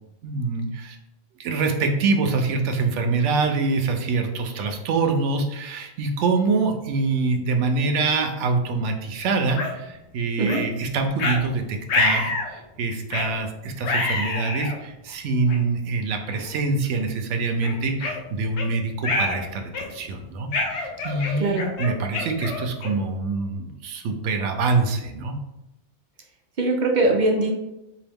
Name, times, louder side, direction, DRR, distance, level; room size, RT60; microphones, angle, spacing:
voice 1, 0.2-1.0 1.4-25.3, right 3 dB, 85° right, 4 dB, 0.9 m, -25 dB
sound 1, 9.6-9.7 10.5-10.6 11.2-11.4 11.9-12.5 13.1-13.3 13.8-14.8 15.5-15.6 16.3-16.5 16.9-17.1 17.6-18.7 19.0-19.4 19.7-20.1 20.5-23.1, left 2 dB, 75° left, 0.9 m, -26 dB
voice 2, 26.6-27.5, right 2 dB, 55° right, 1 dB, 0.5 m, -21 dB
3.9 x 2.6 x 3.4 m, 0.92 s
omnidirectional pair, 1.2 m